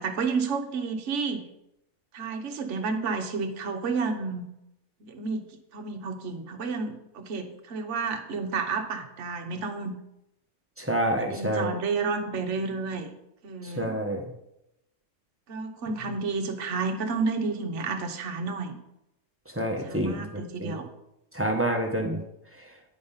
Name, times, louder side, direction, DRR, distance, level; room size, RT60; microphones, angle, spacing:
voice 1, 0.0-1.5 2.1-4.5 5.0-5.5 5.7-9.9 11.2-13.1 13.4-13.9 15.5-18.8 19.8-20.9, right 4 dB, 55° right, 5 dB, 1.2 m, -31 dB
voice 2, 10.8-11.7 13.6-14.2 19.5-20.8 21.3-22.2, right 1 dB, 10° right, 2 dB, 0.8 m, -28 dB
9.5 x 5.3 x 5.6 m, 0.85 s
omnidirectional pair, 1.6 m